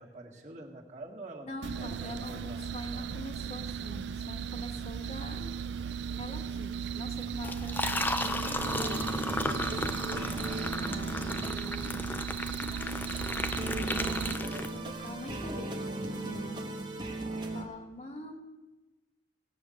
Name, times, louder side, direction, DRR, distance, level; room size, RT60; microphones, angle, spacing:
voice 1, 0.0-2.6 2.9-3.1 8.8-9.7, right 2 dB, 40° right, 0 dB, 1.7 m, -47 dB
voice 2, 1.4-5.6 6.2-8.1 8.6-9.2 10.8-12.3 13.8-16.7 17.4-18.4, left 1 dB, 35° left, 4 dB, 1.3 m, -45 dB
sound 1, 1.6-14.4, right 7 dB, 75° right, 0.4 m, -37 dB
Liquid, 7.4-15.1, left 2 dB, 10° left, 0.4 m, -34 dB
sound 2, 8.2-17.7, right 2 dB, 25° right, 1.1 m, -38 dB
17.0 x 8.0 x 6.4 m, 1.2 s
head